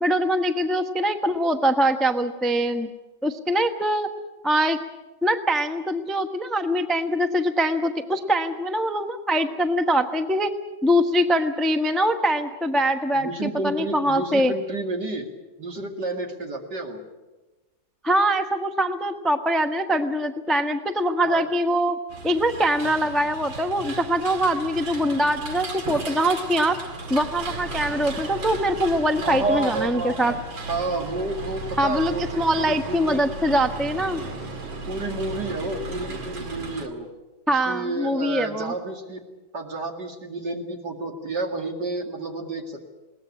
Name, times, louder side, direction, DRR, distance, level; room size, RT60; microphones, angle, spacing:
voice 1, 0.0-2.9 3.2-4.1 4.4-4.8 5.2-10.5 10.8-14.5 18.0-22.0 22.2-26.8 27.1-30.3 31.8-34.2 37.5-38.7, equal, ahead, 7 dB, 0.7 m, -23 dB
voice 2, 13.1-15.3 15.6-17.0 21.2-21.4 29.2-30.4 30.7-33.2 34.9-37.1 37.5-39.2 39.5-42.9, right 2 dB, 60° right, 4 dB, 2.9 m, -30 dB
sound 1, 22.1-36.9, right 3 dB, 80° right, 3.0 m, -35 dB
21.5 x 18.5 x 8.6 m, 1.1 s
omnidirectional pair, 2.1 m